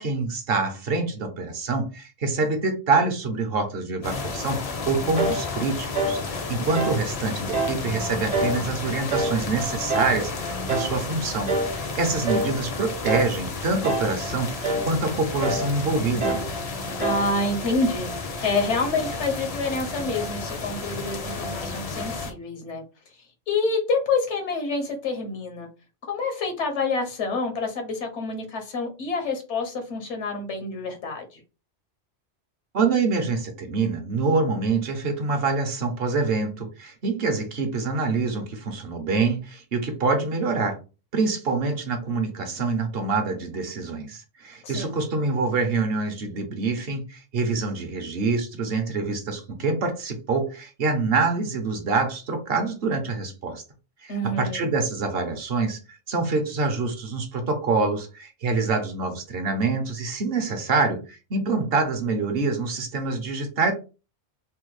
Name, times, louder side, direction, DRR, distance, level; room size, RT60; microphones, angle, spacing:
voice 1, 0.0-16.4 32.7-40.8 41.1-53.6 54.0-63.7, right 4 dB, 60° right, 6 dB, 0.9 m, -26 dB
sound 1, 4.0-22.3, left 3 dB, 45° left, 0.5 m, -32 dB
sound 2, 5.2-5.5 5.9-6.2 6.7-7.0 7.5-7.8 8.3-8.6 9.1-9.4 9.9-10.2 10.7-11.0 11.5-11.8 12.3-12.6 13.0-13.4 13.8-14.2 14.6-14.9 15.4-15.7 16.2-16.5 17.0-17.3, right 2 dB, 45° right, 0.6 m, -26 dB
voice 2, 17.0-18.1 18.4-22.8 23.1-25.7 26.1-31.4 44.6-45.0 54.1-54.6, left 3 dB, 80° left, 5 dB, 1.1 m, -27 dB
3.3 x 2.1 x 3.1 m, 0.31 s
omnidirectional pair, 1.2 m